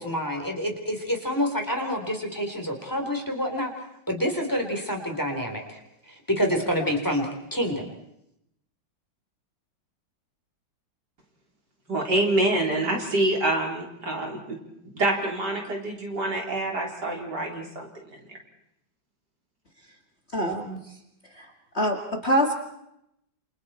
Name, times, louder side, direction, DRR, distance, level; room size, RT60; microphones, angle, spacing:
voice 1, 0.0-3.7 4.1-5.8 6.1-7.7, equal, 10° left, 2 dB, 3.8 m, -27 dB
voice 2, 11.9-14.6 14.9-18.4, right 1 dB, 55° right, 0 dB, 4.5 m, -26 dB
voice 3, 20.3-20.8 21.3-22.0 22.2-22.5, equal, 35° left, 3 dB, 2.3 m, -25 dB
28.5 x 27.5 x 4.4 m, 0.79 s
omnidirectional pair, 2.1 m